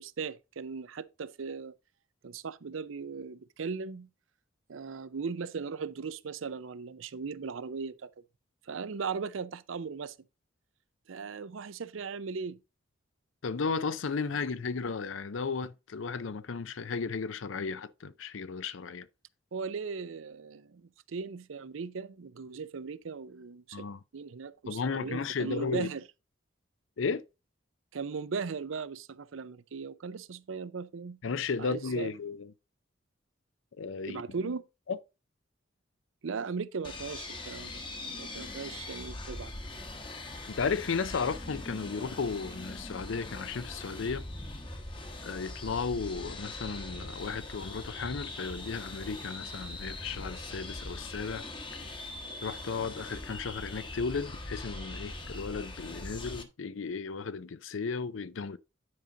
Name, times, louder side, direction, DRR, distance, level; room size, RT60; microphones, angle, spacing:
voice 1, 0.0-1.7 2.2-4.1 4.7-8.1 8.6-10.2 11.1-12.6 19.5-23.8 24.1-26.0 27.9-31.2 31.6-32.1 34.1-34.6 36.2-37.8 38.1-39.5, right 5 dB, 85° right, 0.5 m, -38 dB
voice 2, 13.4-19.1 23.7-24.0 24.7-25.9 27.0-27.2 31.2-32.5 33.8-34.2 34.9-35.0 40.5-44.2 45.2-51.5 52.4-58.6, left 5 dB, 80° left, 0.5 m, -34 dB
sound 1, 36.8-56.4, left 2 dB, 25° left, 1.0 m, -41 dB
9.7 x 5.2 x 3.8 m
head